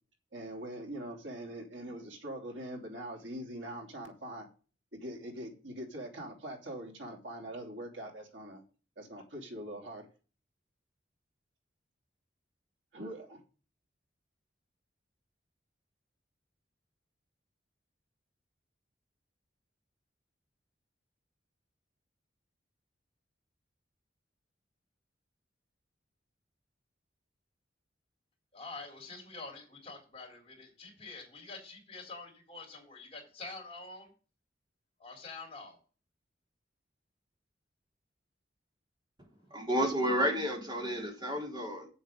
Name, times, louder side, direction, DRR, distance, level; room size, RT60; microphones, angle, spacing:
voice 1, 0.3-4.5 4.9-8.6 9.0-10.1 12.9-13.4, right 1 dB, 90° right, 3.1 m, -43 dB
voice 2, 28.5-34.1 35.0-35.8, left 3 dB, 30° left, 3.8 m, -46 dB
voice 3, 39.5-41.9, equal, 25° right, 3.6 m, -31 dB
8.3 x 7.2 x 5.2 m
head